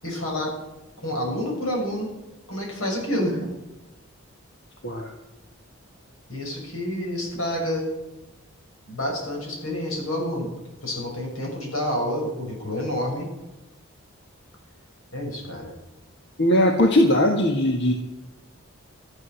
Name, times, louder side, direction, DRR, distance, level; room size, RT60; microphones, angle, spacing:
voice 1, 0.0-0.5 1.0-2.1 2.5-3.5 6.3-7.8 8.9-10.5 10.8-13.3 15.1-15.7, left 1 dB, 75° left, 0 dB, 6.9 m, -28 dB
voice 2, 16.4-17.9, left 1 dB, 55° left, 3 dB, 1.5 m, -19 dB
13.5 x 11.5 x 7.1 m, 1.0 s
head